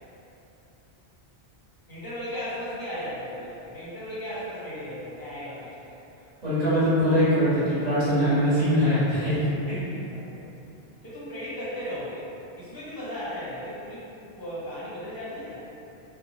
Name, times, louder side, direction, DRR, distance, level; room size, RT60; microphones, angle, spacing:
voice 1, 1.9-5.9 10.0-10.5 11.0-12.3 12.5-15.6, equal, 25° left, -11 dB, 0.7 m, -36 dB
voice 2, 6.4-9.3 9.7-9.8, equal, 40° right, -14 dB, 1.2 m, -22 dB
2.7 x 2.2 x 2.7 m, 2.9 s
omnidirectional pair, 1.1 m